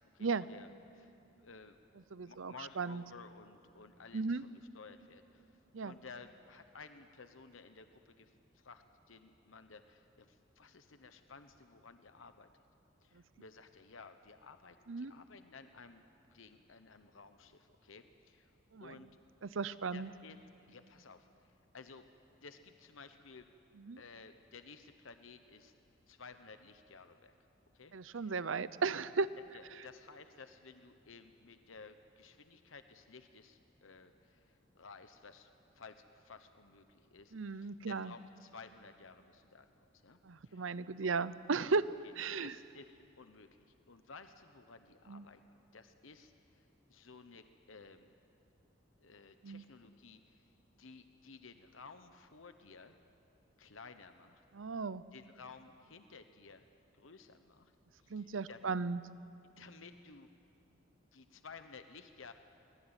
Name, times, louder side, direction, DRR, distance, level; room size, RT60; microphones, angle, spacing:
voice 1, 0.1-1.8 2.2-12.5 13.0-16.0 16.3-18.5 18.8-19.1 19.9-22.0 22.4-23.5 24.0-25.7 26.1-27.3 27.7-28.4 29.5-35.5 35.7-39.7 40.0-40.7 42.0-42.1 42.4-48.2 49.0-53.0 53.6-54.4 55.1-56.6 56.9-58.7 59.6-60.3 61.1-62.3, left 4 dB, 85° left, 9 dB, 1.1 m, -55 dB
voice 2, 2.1-3.0 4.1-4.4 5.7-5.9 14.9-15.1 18.7-19.0 19.4-20.1 23.9-24.0 27.9-29.3 37.3-38.1 40.2-41.9 42.2-42.5 45.1-45.2 49.4-49.6 54.5-55.0 58.1-59.0, right 4 dB, 85° right, 16 dB, 0.7 m, -36 dB
23.5 x 20.0 x 9.0 m, 2.8 s
head